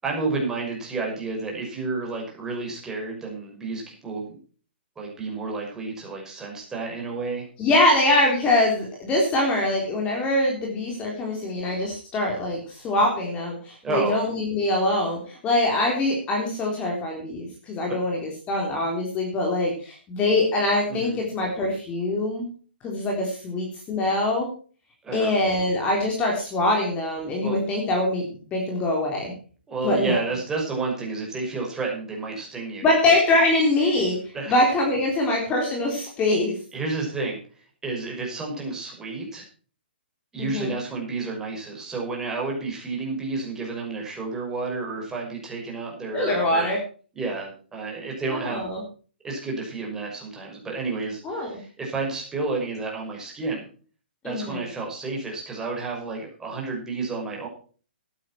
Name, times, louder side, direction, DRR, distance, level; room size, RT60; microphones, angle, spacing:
voice 1, 0.0-4.3 5.0-7.5 13.8-14.2 17.9-18.0 20.9-21.2 25.0-25.3 27.4-27.6 29.7-32.9 34.3-34.6 36.7-39.4 40.3-46.8 47.1-48.6 49.2-53.7 54.2-57.5, right 3 dB, 10° right, -1 dB, 5.9 m, -30 dB
voice 2, 7.6-22.5 22.8-24.5 25.1-29.3 29.8-30.2 32.8-34.2 34.5-36.5 40.4-40.8 46.1-46.8 48.5-48.8 51.2-51.6 54.2-54.6, left 2 dB, 20° left, 0 dB, 3.7 m, -23 dB
14.5 x 11.5 x 4.5 m, 0.40 s
figure-of-eight pair, 125°, 6 cm